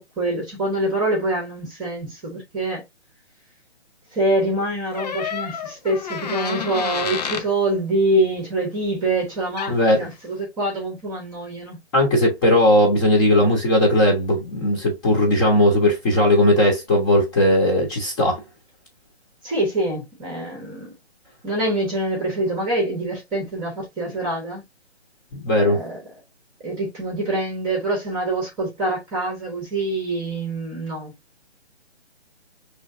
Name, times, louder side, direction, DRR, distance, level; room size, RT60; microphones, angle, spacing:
voice 1, 0.0-2.8 4.1-11.8 19.4-20.9 21.4-24.6 25.6-26.0 26.6-31.1, right 1 dB, 10° right, 1.1 m, -25 dB
Door, 4.9-7.5 9.3-9.4 9.6-9.9, left 7 dB, 40° left, 0.7 m, -29 dB
voice 2, 9.7-10.0 11.9-18.4 25.3-25.8, left 1 dB, 20° left, 1.2 m, -18 dB
6.1 x 3.3 x 2.6 m
hypercardioid pair, 160°, 34 cm